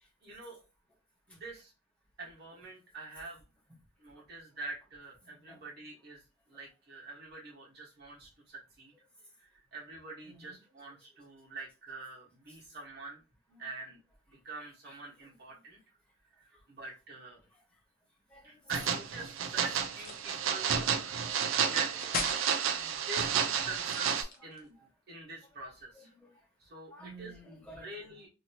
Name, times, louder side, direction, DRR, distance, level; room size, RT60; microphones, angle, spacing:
voice 1, 0.2-0.6 1.3-1.7 2.2-3.4 4.0-6.2 6.5-8.9 9.4-13.2 13.6-14.0 14.3-15.8 16.3-17.4 18.4-20.8 21.6-21.9 22.7-26.1 26.6-27.3 27.8-28.3, right 3 dB, 55° right, -3 dB, 1.3 m, -45 dB
voice 2, 10.2-10.5 13.5-14.0 14.8-15.0 15.3-15.4 18.3-18.5 20.5-21.4 21.7-21.8 24.6-24.8 25.6-26.3 26.9-28.2, right 1 dB, 5° left, -3 dB, 1.2 m, -53 dB
sound 1, 18.7-24.2, right 7 dB, 75° right, 0.4 m, -31 dB
sound 2, 19.9-20.4 22.0-22.5 23.8-24.7, left 3 dB, 50° left, 0.7 m, -37 dB
2.8 x 2.8 x 2.8 m, 0.29 s
head